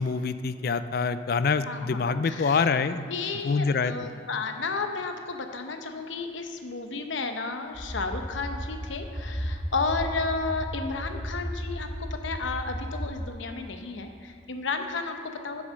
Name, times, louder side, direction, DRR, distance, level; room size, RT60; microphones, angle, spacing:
voice 1, 0.0-3.0 3.4-4.1, left 5 dB, 50° left, 12 dB, 0.4 m, -26 dB
voice 2, 1.7-2.6 3.1-15.6, left 4 dB, 70° left, 5 dB, 0.9 m, -32 dB
sound 1, 7.7-13.3, equal, 15° left, 1.2 m, -34 dB
8.8 x 7.3 x 6.5 m, 2.4 s
head